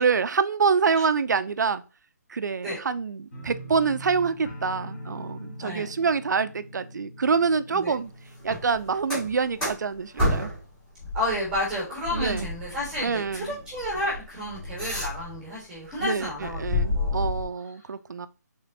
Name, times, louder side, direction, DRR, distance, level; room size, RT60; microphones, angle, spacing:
voice 1, 0.0-1.8 2.3-8.1 8.4-10.5 12.1-12.5 13.0-13.5 16.0-18.3, right 5 dB, 75° right, 0.5 m, -26 dB
sound 1, 3.3-10.2 10.5-11.0 11.4-11.5, equal, 30° left, 2.1 m, -43 dB
sound 2, 8.4-10.7 11.0-15.5 15.9-17.4, left 1 dB, 10° left, 1.9 m, -31 dB
voice 2, 11.1-17.3, left 1 dB, 5° right, 1.4 m, -31 dB
5.2 x 3.6 x 2.7 m
hypercardioid pair, 170°, 10 cm